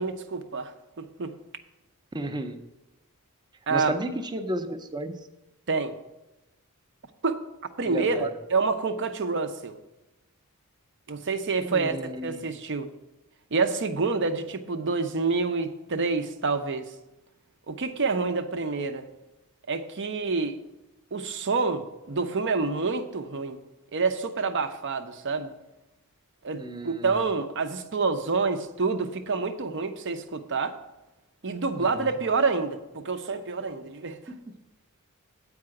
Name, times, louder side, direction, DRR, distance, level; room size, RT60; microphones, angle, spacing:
voice 1, 0.0-1.3 3.7-3.9 5.7-5.9 7.2-7.4 7.8-9.8 11.1-12.9 13.5-16.9 17.7-19.1 19.7-20.6 21.1-23.6 23.9-25.5 26.4-30.8 31.4-34.2, right 4 dB, 55° right, 8 dB, 0.7 m, -28 dB
voice 2, 2.1-2.6 3.7-5.1 7.9-8.3 11.6-12.4 26.6-27.1 31.8-32.1, right 1 dB, 20° right, 6 dB, 0.6 m, -33 dB
8.7 x 4.8 x 7.6 m, 0.99 s
head